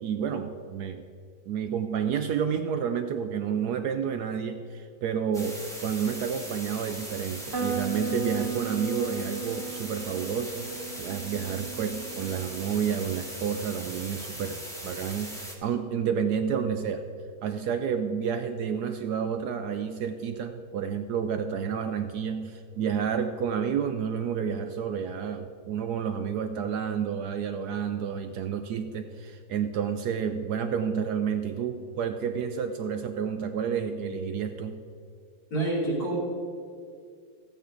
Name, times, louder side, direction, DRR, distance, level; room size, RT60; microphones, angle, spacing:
voice 1, 0.0-1.0 1.5-17.0 17.4-34.8, right 7 dB, 70° right, 7 dB, 1.0 m, -30 dB
sound 1, 5.3-15.5, equal, ahead, 1.3 m, -40 dB
sound 2, 7.5-13.3, right 4 dB, 40° right, 1.3 m, -36 dB
voice 2, 35.5-36.2, right 2 dB, 55° left, -5 dB, 3.6 m, -27 dB
14.5 x 8.9 x 3.8 m, 2.3 s
omnidirectional pair, 2.0 m